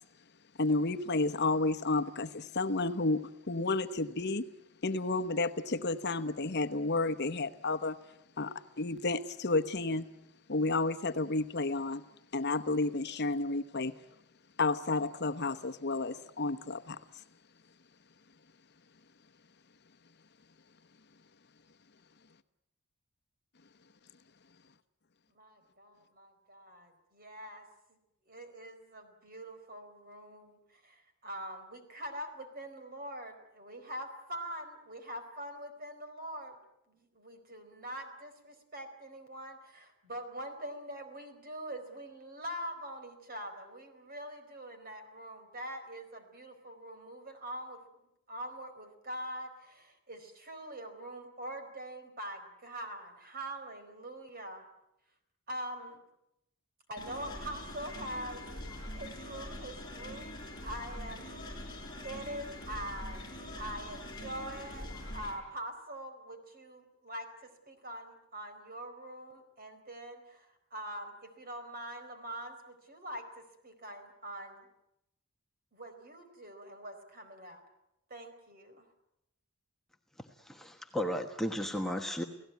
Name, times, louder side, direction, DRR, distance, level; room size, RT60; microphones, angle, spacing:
voice 1, 0.6-3.2 3.5-4.4 4.8-8.0 8.4-10.1 10.5-12.0 12.3-13.9 14.6-17.0, left 3 dB, 50° left, 10 dB, 1.0 m, -31 dB
voice 2, 25.3-27.7 28.2-36.6 36.9-47.8 48.3-54.7 55.5-56.0 56.9-58.5 58.9-60.3 60.6-61.6 62.0-74.7 75.7-77.6 78.1-78.9, right 1 dB, 45° right, 7 dB, 4.4 m, -44 dB
sound 1, 57.0-65.4, left 1 dB, 20° left, 5.7 m, -43 dB
voice 3, 80.4-82.2, equal, ahead, 2 dB, 1.2 m, -34 dB
29.5 x 17.5 x 9.4 m, 0.86 s
head